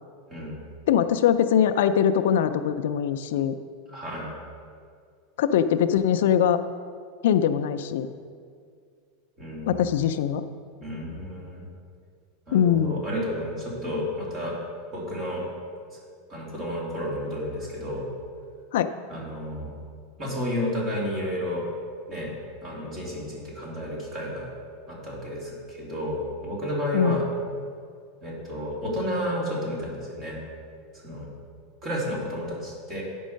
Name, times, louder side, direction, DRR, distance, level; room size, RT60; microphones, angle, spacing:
voice 1, 0.9-3.5 5.4-6.6 7.2-8.1 9.7-10.4 12.5-13.1 18.7-18.9 26.9-27.2, left 9 dB, 80° left, 10 dB, 0.4 m, -22 dB
voice 2, 3.9-4.3 9.4-9.7 10.8-11.7 12.5-14.6 14.9-15.4 16.3-18.1 19.1-19.7 20.2-21.6 22.1-22.3 22.6-24.5 24.9-27.2 28.2-30.4 31.0-31.3 31.8-33.0, equal, 25° right, -4 dB, 2.5 m, -31 dB
9.1 x 5.4 x 6.3 m, 2.1 s
supercardioid pair, 155°, 0 cm